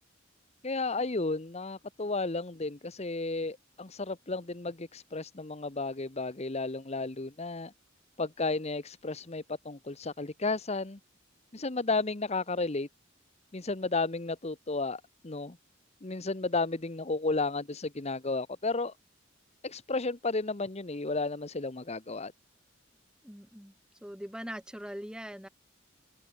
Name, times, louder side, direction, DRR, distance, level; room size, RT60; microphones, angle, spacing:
voice 1, 0.6-7.7 8.2-11.0 11.5-12.9 13.5-15.6 16.0-18.9 19.6-22.3, left 3 dB, 35° left, 1.0 m, -33 dB
voice 2, 23.2-23.7 24.0-25.5, equal, 5° right, 3.3 m, -41 dB
open air
head